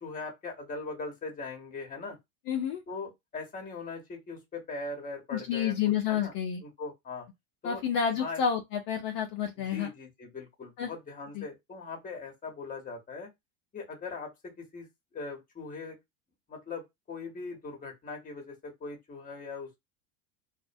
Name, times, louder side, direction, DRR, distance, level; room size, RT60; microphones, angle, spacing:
voice 1, 0.0-2.2 2.9-6.3 6.6-7.3 7.6-7.8 8.2-8.4 9.6-13.3 13.7-14.9 15.1-16.0 16.5-19.8, left 4 dB, 20° left, 0.9 m, -40 dB
voice 2, 2.5-2.8 5.3-6.6 7.6-9.9 10.8-10.9 11.3-11.4, left 8 dB, 50° left, 0.6 m, -29 dB
2.5 x 2.1 x 2.5 m
supercardioid pair, 105°, 44 cm